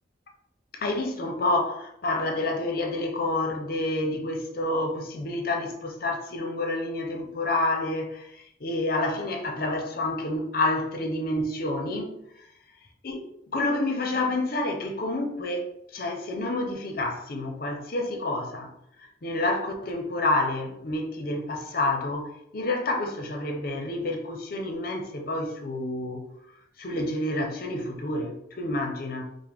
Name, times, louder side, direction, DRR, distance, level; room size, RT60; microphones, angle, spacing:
voice 1, 0.7-12.2 13.0-13.2 13.5-18.7 19.0-26.2 26.8-29.4, left 2 dB, 55° left, 0.7 m, -29 dB
4.8 x 2.1 x 3.5 m
head